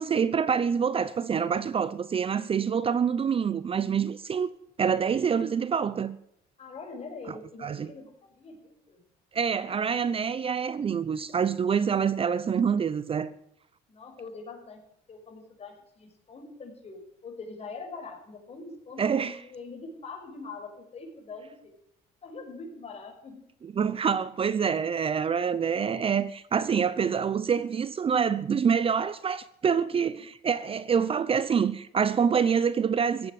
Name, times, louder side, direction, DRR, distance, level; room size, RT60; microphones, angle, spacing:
voice 1, 0.0-4.5 4.8-6.2 7.6-7.9 9.3-13.3 19.0-19.4 23.6-33.3, right 7 dB, 35° right, 0.8 m, -26 dB
voice 2, 6.6-9.0 13.9-14.8 15.1-21.7 22.2-23.4, left 4 dB, 40° left, 5.8 m, -43 dB
16.0 x 9.4 x 9.5 m
cardioid pair, 110°, 17 cm